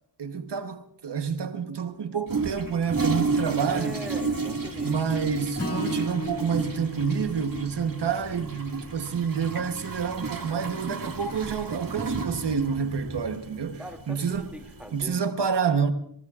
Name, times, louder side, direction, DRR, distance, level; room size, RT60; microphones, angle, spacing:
voice 1, 0.2-4.0 4.8-13.8 14.1-14.5 14.9-15.9, right 6 dB, 80° right, 1.1 m, -28 dB
Toilet flush, 2.3-15.1, right 4 dB, 55° right, 2.1 m, -32 dB
voice 2, 3.6-5.4 5.7-6.1 13.8-15.2, equal, 5° right, 2.4 m, -42 dB
Acoustic guitar / Strum, 5.6-9.9, left 1 dB, 35° left, 2.1 m, -37 dB
26.5 x 20.0 x 2.4 m
wide cardioid pair, 60°, 41 cm